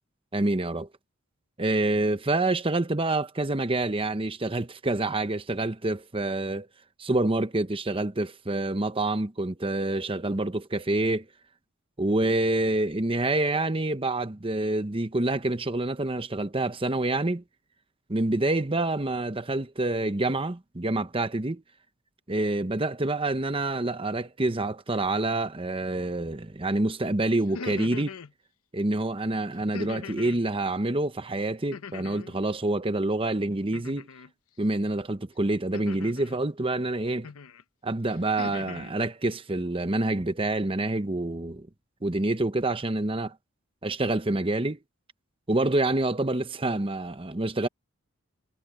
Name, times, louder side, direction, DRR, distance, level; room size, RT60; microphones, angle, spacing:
voice 1, 0.3-0.9 1.6-6.7 7.0-11.3 12.0-17.4 18.1-21.6 22.3-28.1 28.7-34.1 34.6-37.3 37.8-41.7 42.0-43.3 43.8-44.8 45.5-47.7, right 2 dB, 25° right, 0.9 m, -27 dB
sound 1, 27.4-28.3 29.7-30.4 31.7-32.4 33.7-34.3 35.7-36.4 37.2-37.6 38.1-38.9, left 4 dB, 90° left, 0.8 m, -40 dB
head